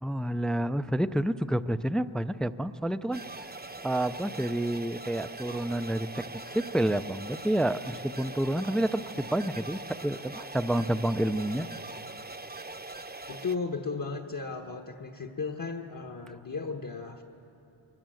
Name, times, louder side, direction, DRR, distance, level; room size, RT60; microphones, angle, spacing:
voice 1, 0.0-3.2 3.8-11.7, right 1 dB, ahead, 11 dB, 0.5 m, -29 dB
sound 1, 3.1-13.6, right 2 dB, 20° right, 0.8 m, -42 dB
voice 2, 13.3-17.2, left 4 dB, 45° left, 3 dB, 1.3 m, -35 dB
24.0 x 20.0 x 7.7 m, 2.9 s
wide cardioid pair, 70°, 48 cm